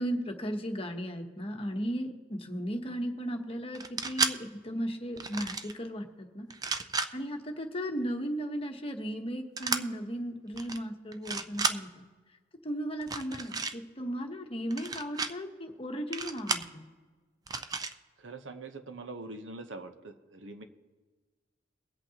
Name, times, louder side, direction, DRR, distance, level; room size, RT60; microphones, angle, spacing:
voice 1, 0.0-6.5 7.1-12.0 12.6-16.8, equal, 30° left, 4 dB, 1.0 m, -36 dB
sound 1, 3.7-4.3 5.2-5.7 6.5-7.1 9.6-9.8 10.5-10.8 11.1-11.8 13.0-13.7 14.7-15.3 16.1-16.7 17.5-17.9, right 4 dB, 20° right, 0.4 m, -32 dB
voice 2, 18.2-20.6, right 3 dB, 80° right, 8 dB, 0.9 m, -43 dB
23.0 x 8.2 x 2.9 m, 1.4 s
head